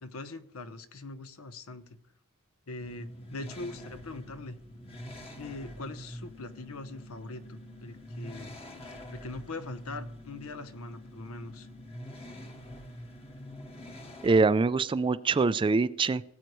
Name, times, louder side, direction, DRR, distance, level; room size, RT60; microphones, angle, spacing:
voice 1, 0.0-2.0 2.7-4.6 5.3-8.5 9.1-11.7, left 2 dB, 70° left, 11 dB, 0.9 m, -42 dB
sound 1, 2.8-14.4, equal, 30° left, 1.4 m, -45 dB
voice 2, 14.2-16.2, right 4 dB, 25° right, 15 dB, 0.3 m, -24 dB
18.5 x 8.1 x 3.1 m, 0.81 s
head